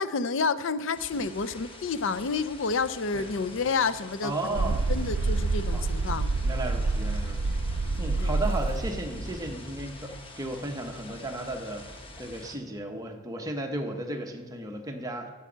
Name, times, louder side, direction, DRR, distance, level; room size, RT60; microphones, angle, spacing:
voice 1, 0.0-6.3 8.2-8.4, left 4 dB, 60° left, 13 dB, 0.5 m, -29 dB
sound 1, 0.9-12.6, left 1 dB, 25° left, 1.1 m, -45 dB
voice 2, 4.2-4.8 5.7-5.8 6.4-7.4 7.7-15.3, right 1 dB, 15° right, 3 dB, 0.9 m, -35 dB
sound 2, 4.5-9.4, right 3 dB, 75° right, 0.4 m, -28 dB
9.1 x 6.9 x 7.3 m, 1.4 s
head